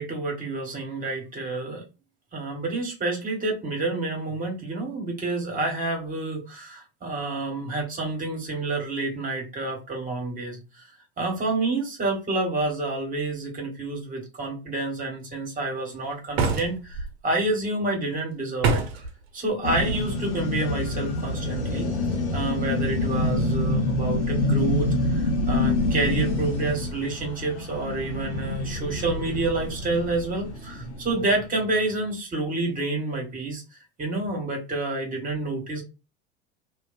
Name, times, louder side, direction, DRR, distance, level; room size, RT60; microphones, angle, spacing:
voice 1, 0.0-1.8 2.3-10.6 11.2-17.0 17.2-18.8 19.3-21.9 22.3-33.6 34.0-35.8, right 2 dB, 25° right, 1.5 m, -28 dB
sound 1, 16.3-17.1 18.6-19.1, right 4 dB, 65° right, 0.7 m, -24 dB
sound 2, 19.6-31.5, left 1 dB, 80° left, 0.9 m, -27 dB
2.6 x 2.3 x 2.5 m
hypercardioid pair, 85°, 34 cm